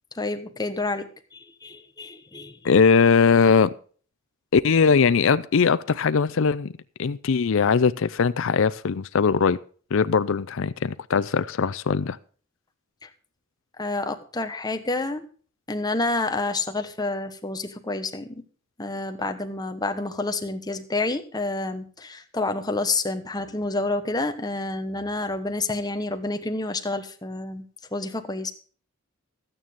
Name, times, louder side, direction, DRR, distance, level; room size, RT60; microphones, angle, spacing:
voice 1, 0.2-2.6 13.0-13.1 13.8-15.3 15.7-18.4 18.8-27.6 27.9-28.5, left 2 dB, 20° left, 1.1 m, -29 dB
voice 2, 2.6-3.7 4.5-6.7 7.0-9.6 9.9-12.2, left 5 dB, 65° left, 0.5 m, -20 dB
13.0 x 9.1 x 5.2 m
head